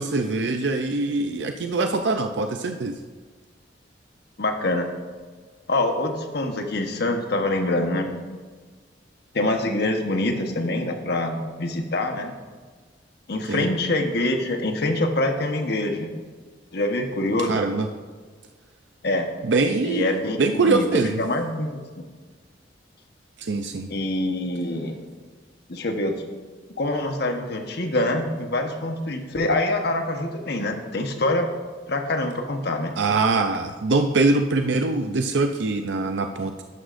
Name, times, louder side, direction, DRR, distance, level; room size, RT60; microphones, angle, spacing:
voice 1, 0.0-3.0 13.5-13.7 17.5-17.9 19.4-20.1 20.4-21.2 23.4-23.9 33.0-36.6, right 3 dB, 80° right, 6 dB, 0.5 m, -23 dB
voice 2, 4.4-4.9 5.7-8.1 9.3-12.3 13.3-16.2 16.7-17.6 19.0-19.3 19.8-20.8 21.2-21.7 23.9-25.0 25.7-26.1 26.8-31.5 31.9-32.9, left 2 dB, 65° left, 4 dB, 1.2 m, -25 dB
12.0 x 11.0 x 2.6 m, 1.5 s
head